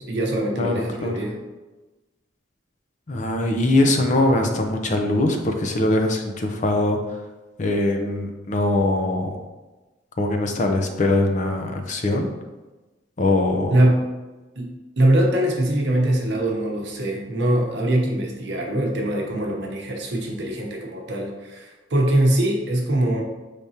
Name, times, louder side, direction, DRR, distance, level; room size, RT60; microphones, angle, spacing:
voice 1, 0.0-1.4 13.7-14.0 14.6-23.2, right 1 dB, 65° right, 0 dB, 0.8 m, -22 dB
voice 2, 0.6-1.2 3.1-7.0 7.6-9.4 10.2-12.3 13.2-13.8, left 2 dB, 40° left, 4 dB, 0.5 m, -22 dB
5.0 x 3.5 x 2.8 m, 1.1 s
head